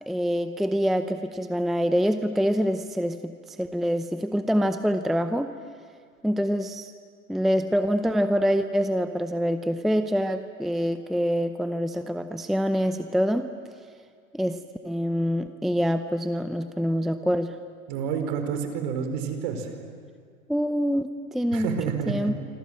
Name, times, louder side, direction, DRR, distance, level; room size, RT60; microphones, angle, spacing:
voice 1, 0.0-5.5 6.2-6.9 7.3-13.5 14.3-14.6 14.8-17.6 20.5-21.8 22.1-22.3, equal, ahead, 9 dB, 0.6 m, -25 dB
voice 2, 17.9-19.7 21.5-22.3, right 7 dB, 50° right, 6 dB, 4.7 m, -29 dB
26.5 x 26.0 x 7.8 m, 2.1 s
hypercardioid pair, 110°, 41 cm